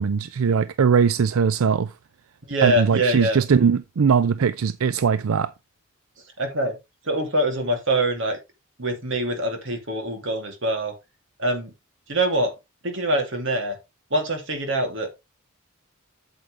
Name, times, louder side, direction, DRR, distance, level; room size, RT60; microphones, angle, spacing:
voice 1, 0.0-1.9 2.6-5.5, right 6 dB, 85° right, 0.4 m, -20 dB
voice 2, 2.5-3.4 6.4-6.8 7.0-8.4 8.8-10.9 11.4-11.7 12.1-12.5 12.8-13.8 14.1-15.1, right 1 dB, 60° right, 2.7 m, -24 dB
8.7 x 7.9 x 3.3 m
head